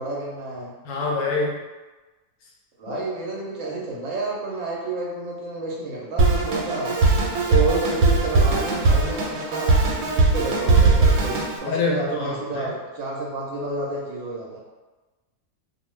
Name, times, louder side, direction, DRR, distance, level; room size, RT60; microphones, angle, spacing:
voice 1, 0.0-0.7 2.8-14.6, right 3 dB, 65° right, -3 dB, 0.8 m, -30 dB
voice 2, 0.8-1.6 2.9-3.0 11.6-12.7, left 4 dB, 70° left, -2 dB, 0.8 m, -26 dB
Drum kit, 6.2-11.6, right 3 dB, 85° right, 1.1 m, -19 dB
2.5 x 2.3 x 3.1 m, 1.2 s
omnidirectional pair, 1.6 m